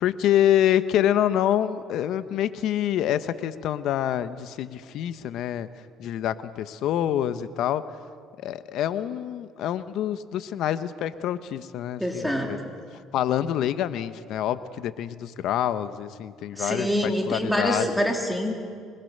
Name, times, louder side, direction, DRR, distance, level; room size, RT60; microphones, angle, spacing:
voice 1, 0.0-5.7 6.0-7.8 8.4-12.6 13.1-17.9, left 11 dB, 70° left, 12 dB, 1.1 m, -26 dB
voice 2, 12.0-12.5 16.5-18.5, equal, ahead, 1 dB, 3.4 m, -25 dB
25.5 x 21.5 x 6.8 m, 2.1 s
cardioid pair, 95°, 0 cm